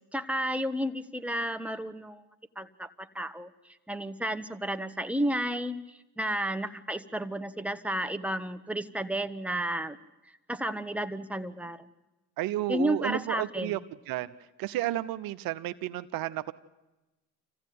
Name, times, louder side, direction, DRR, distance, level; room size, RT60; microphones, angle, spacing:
voice 1, 0.1-2.2 2.5-10.0 10.5-11.9 12.7-13.8, right 1 dB, 5° right, 9 dB, 1.4 m, -32 dB
voice 2, 12.4-13.8 14.1-14.3 14.6-16.5, right 15 dB, 85° right, 13 dB, 0.7 m, -32 dB
25.5 x 15.5 x 9.5 m, 1.1 s
supercardioid pair, 50°, 34 cm